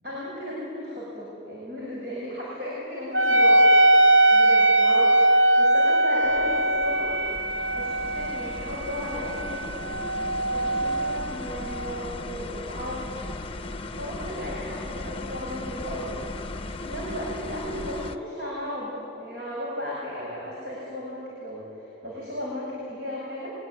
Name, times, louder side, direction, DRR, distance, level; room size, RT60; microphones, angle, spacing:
voice 1, 0.0-3.7 4.3-7.1 7.7-9.7 10.5-13.3 13.9-21.6 22.0-23.5, equal, 55° right, -6 dB, 7.4 m, -35 dB
Wind instrument woodwind instrument, 3.1-12.1, right 1 dB, 75° right, 0.8 m, -21 dB
sound 1, 6.2-18.2, left 2 dB, 30° left, 0.8 m, -37 dB
24.5 x 21.0 x 9.8 m, 2.5 s
head